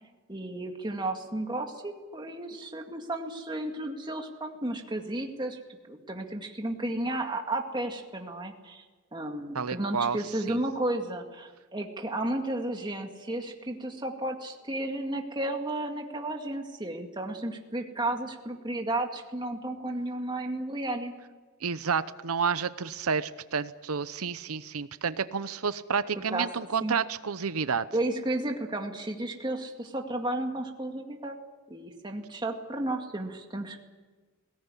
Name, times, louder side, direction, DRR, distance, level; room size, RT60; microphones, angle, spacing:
voice 1, 0.3-5.6 5.9-8.8 9.1-21.1 26.3-26.5 26.8-27.0 27.9-31.4 31.7-33.8, right 1 dB, 20° right, 3 dB, 2.1 m, -33 dB
voice 2, 9.5-10.2 10.5-10.6 21.6-27.9, right 6 dB, 90° right, 14 dB, 0.8 m, -30 dB
20.5 x 18.0 x 9.9 m, 1.3 s
head